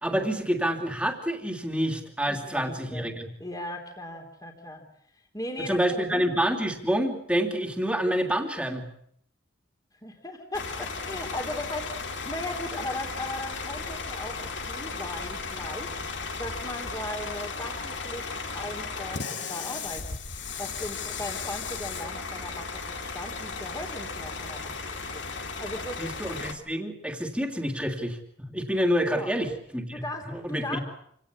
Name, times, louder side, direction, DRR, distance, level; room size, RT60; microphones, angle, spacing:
voice 1, 0.0-3.3 5.7-8.9 26.0-30.0 30.3-30.8, equal, 5° right, 4 dB, 3.0 m, -28 dB
voice 2, 2.3-3.1 3.4-4.8 5.3-6.2 10.0-16.0 16.4-18.3 18.5-24.7 25.1-25.2 25.6-26.0 29.1-29.3 29.9-30.8, left 1 dB, 20° left, 4 dB, 3.2 m, -37 dB
Bus / Idling, 10.5-26.5, left 4 dB, 65° left, 2.5 m, -35 dB
28.0 x 17.5 x 8.4 m, 0.71 s
head